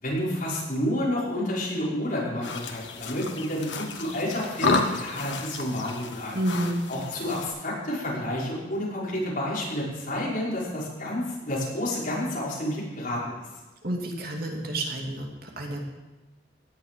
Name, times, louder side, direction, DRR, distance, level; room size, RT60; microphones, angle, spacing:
voice 1, 0.0-6.4 6.9-13.3, left 1 dB, 50° left, -6 dB, 5.8 m, -30 dB
sound 1, 2.4-7.5, left 3 dB, 85° left, 1.5 m, -32 dB
voice 2, 6.3-6.8 13.8-15.9, right 1 dB, 55° right, 0 dB, 2.6 m, -30 dB
17.0 x 11.0 x 5.3 m, 1.1 s
head